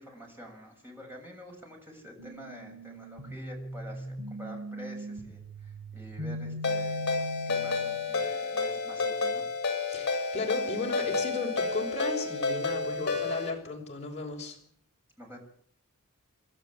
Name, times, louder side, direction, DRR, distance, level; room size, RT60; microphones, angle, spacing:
voice 1, 0.0-9.4 15.2-15.4, equal, 10° right, 1 dB, 6.8 m, -48 dB
sound 1, 2.2-8.1, equal, 80° right, 7.6 m, -40 dB
Ringtone, 6.6-13.5, left 3 dB, 50° left, 7.5 m, -30 dB
voice 2, 9.9-14.6, left 3 dB, 30° left, 0 dB, 5.6 m, -35 dB
28.5 x 12.5 x 8.7 m, 0.64 s
head